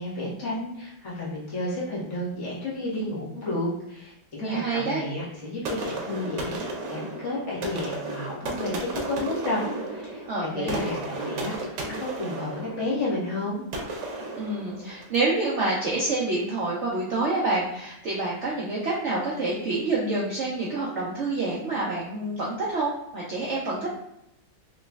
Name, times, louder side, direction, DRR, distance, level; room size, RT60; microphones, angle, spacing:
voice 1, 0.0-9.6 9.9-13.6, left 1 dB, 45° left, -7 dB, 1.6 m, -31 dB
voice 2, 4.4-5.0 10.2-10.8 14.4-23.9, right 2 dB, 60° right, -5 dB, 0.7 m, -27 dB
sound 1, 5.6-15.3, right 2 dB, 80° right, 1.3 m, -34 dB
4.0 x 3.0 x 2.3 m, 0.80 s
omnidirectional pair, 1.8 m